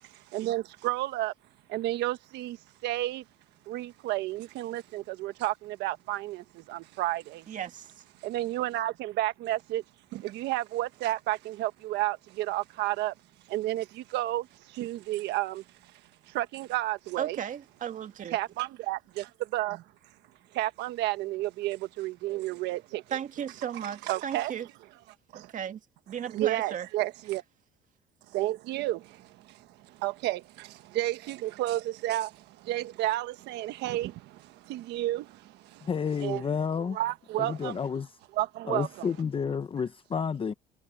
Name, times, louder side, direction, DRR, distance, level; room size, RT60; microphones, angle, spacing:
voice 1, 0.0-1.3 1.7-2.6 2.8-3.2 3.7-7.5 8.2-9.8 10.1-13.1 13.5-15.9 16.3-17.4 18.3-19.8 20.5-23.2 24.1-24.5 25.3-25.5 26.3-27.4 28.3-35.9 36.2-36.4 36.9-37.8 38.4-39.1, right 16 dB, 85° right, 1.3 m, -32 dB
voice 2, 7.5-7.9 17.2-18.4 23.1-24.7 25.3-25.8 26.1-26.9, right 9 dB, 50° right, 2.1 m, -35 dB
voice 3, 35.8-37.0 37.4-38.1 38.7-40.5, left 6 dB, 30° left, 0.9 m, -30 dB
cardioid pair, 110°, 17 cm